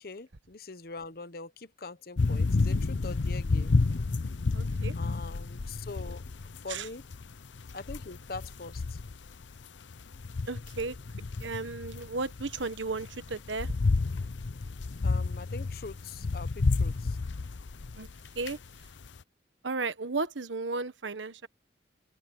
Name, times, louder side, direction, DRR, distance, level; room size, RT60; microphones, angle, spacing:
voice 1, 0.0-3.8 5.0-6.2 6.6-7.0 7.7-9.0 15.0-17.2, left 3 dB, 50° left, 0.9 m, -43 dB
sound 1, 2.2-19.2, left 3 dB, 80° left, 0.7 m, -31 dB
voice 2, 4.5-4.9 6.7-6.9 10.5-11.0 11.4-13.7 18.0-18.1 18.3-18.6 19.6-21.5, right 3 dB, 85° right, 1.3 m, -34 dB
open air
head